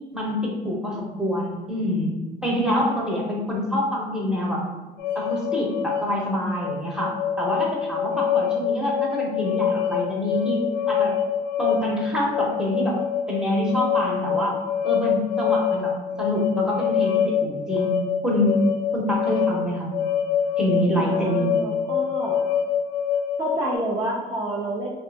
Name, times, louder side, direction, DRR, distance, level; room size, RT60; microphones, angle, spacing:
voice 1, 0.1-2.1 2.4-4.6 5.1-11.1 11.6-13.0 13.3-14.5 14.8-17.9 18.2-18.6 18.9-19.9 20.6-21.6, left 1 dB, 5° right, -3 dB, 0.9 m, -26 dB
sound 1, 5.0-23.8, left 8 dB, 75° left, 0.4 m, -25 dB
voice 2, 20.9-22.4 23.4-24.9, right 1 dB, 25° right, -5 dB, 0.5 m, -29 dB
2.6 x 2.5 x 3.5 m, 1.2 s
cardioid pair, 110°, 17 cm